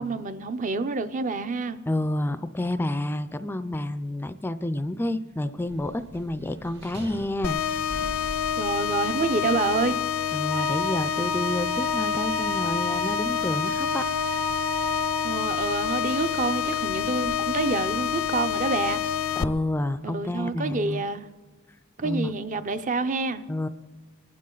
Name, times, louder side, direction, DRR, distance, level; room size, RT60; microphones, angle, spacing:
voice 1, 0.0-1.8 8.6-10.0 15.2-19.0 20.0-21.3 22.0-23.4, right 4 dB, 40° right, 0.6 m, -27 dB
voice 2, 1.9-7.6 10.3-14.0 19.4-21.0 22.0-22.4 23.5-23.7, left 1 dB, 10° left, 0.4 m, -29 dB
sound 1, 5.6-19.4, right 1 dB, 60° right, 1.9 m, -47 dB
sound 2, 7.4-19.4, left 9 dB, 75° left, 0.5 m, -27 dB
Wind instrument woodwind instrument, 10.5-15.3, right 3 dB, 80° right, 2.6 m, -33 dB
24.5 x 11.5 x 3.9 m
head